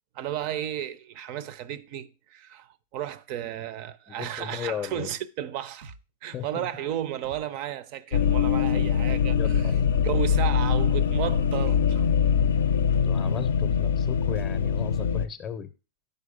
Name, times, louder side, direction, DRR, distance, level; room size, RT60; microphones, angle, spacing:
voice 1, 0.1-5.9 6.2-9.7 10.0-12.1, right 11 dB, 50° right, 0.5 m, -33 dB
voice 2, 4.1-5.1 6.3-6.7 9.3-10.1 12.8-15.7, left 8 dB, 30° left, 0.5 m, -36 dB
sound 1, 5.8-6.0 7.2-7.4 8.7-8.9 10.1-10.3 11.5-11.7 12.9-13.1 14.4-14.6, right 3 dB, 80° right, 0.9 m, -44 dB
sound 2, 8.1-15.3, left 7 dB, 90° left, 0.4 m, -23 dB
5.5 x 4.6 x 4.9 m
hypercardioid pair, 130°, 0 cm